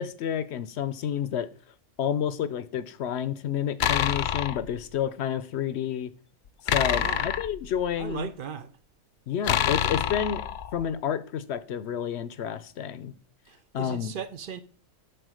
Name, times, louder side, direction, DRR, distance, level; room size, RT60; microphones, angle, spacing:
voice 1, 0.0-1.5 2.0-6.1 6.7-8.3 9.3-10.4 10.7-13.1 13.7-14.1, left 9 dB, 60° left, 0.8 m, -30 dB
sound 1, 3.8-4.7 6.7-8.2 9.4-10.9, left 9 dB, 85° left, 0.4 m, -27 dB
voice 2, 6.9-7.3 8.0-8.8 13.5-14.6, right 7 dB, 60° right, 0.5 m, -37 dB
8.0 x 4.8 x 6.2 m
omnidirectional pair, 1.4 m